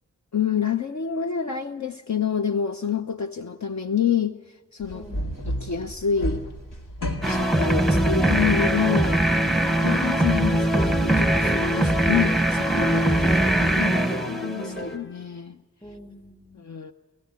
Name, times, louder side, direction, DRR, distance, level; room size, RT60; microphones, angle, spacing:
voice 1, 0.3-5.1 5.5-6.4 7.3-9.2 9.7-13.2 13.8-15.6 16.5-16.9, left 7 dB, 60° left, 7 dB, 0.8 m, -27 dB
sound 1, 4.8-8.3, equal, 90° left, 2.3 m, -32 dB
voice 2, 4.9-5.3 13.1-13.9 15.8-16.6, left 1 dB, 15° left, 5 dB, 4.5 m, -43 dB
sound 2, 7.2-14.9, right 1 dB, ahead, 0.9 m, -22 dB
sound 3, 10.1-12.4 12.8-15.2, left 3 dB, 40° left, 1.3 m, -34 dB
28.0 x 16.0 x 9.5 m, 1.3 s
wide cardioid pair, 65°, 32 cm